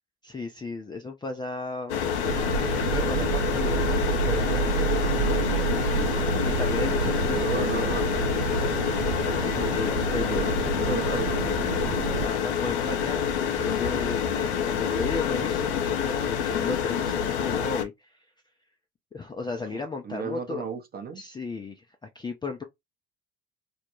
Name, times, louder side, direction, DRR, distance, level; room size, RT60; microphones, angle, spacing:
voice 1, 0.2-2.0 2.6-3.9 4.3-5.4 6.4-7.9 9.2-10.5 10.9-11.2 12.2-18.2 19.1-20.7 21.2-21.9 22.1-22.6, left 4 dB, 15° left, 0.4 m, -34 dB
sound 1, 1.9-17.8, left 8 dB, 80° left, 0.6 m, -27 dB
sound 2, 2.2-12.3, right 7 dB, 80° right, 0.5 m, -29 dB
voice 2, 5.7-6.1 7.3-8.0 9.4-9.8 10.1-11.9 19.7-21.2, right 6 dB, 25° right, 0.7 m, -35 dB
2.3 x 2.0 x 2.9 m
hypercardioid pair, 70°, 34 cm